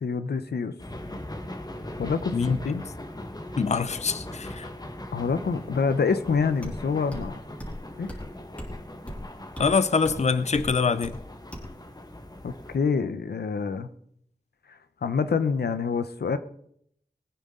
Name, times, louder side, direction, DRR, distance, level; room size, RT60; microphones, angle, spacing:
voice 1, 0.0-0.7 2.0-2.8 5.1-7.4 8.0-8.2 12.4-13.9 14.7-16.4, left 5 dB, 85° left, 11 dB, 0.8 m, -27 dB
sound 1, 0.8-12.8, left 1 dB, 25° left, 1.5 m, -40 dB
voice 2, 3.6-4.7 9.6-11.2, left 5 dB, 45° left, 14 dB, 0.6 m, -24 dB
sound 2, 6.6-6.8 7.1-7.3 7.6-7.8 8.1-8.2 8.6-8.7 9.1-9.2 9.6-9.7 10.0-10.2 10.5-10.7 11.0-11.2 11.5-11.7, equal, 10° left, 3.3 m, -37 dB
21.0 x 9.5 x 3.8 m, 0.69 s
wide cardioid pair, 85°, 16 cm